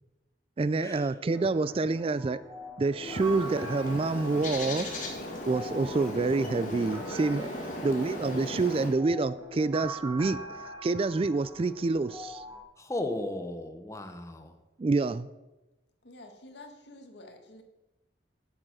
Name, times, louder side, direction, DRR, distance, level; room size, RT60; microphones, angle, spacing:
voice 1, 0.6-2.4 2.8-4.9 5.5-7.5 7.8-12.4 14.8-15.3, right 3 dB, 30° right, 16 dB, 0.3 m, -27 dB
sound 1, 1.3-12.6, right 1 dB, 15° right, 2.1 m, -44 dB
Bird, 3.0-8.9, left 1 dB, 45° left, 2.2 m, -37 dB
voice 2, 7.7-8.1 12.8-14.5, left 1 dB, 15° left, 6 dB, 1.0 m, -36 dB
voice 3, 16.0-17.6, left 2 dB, 75° left, 4 dB, 1.8 m, -49 dB
9.9 x 8.7 x 6.3 m, 1.0 s
head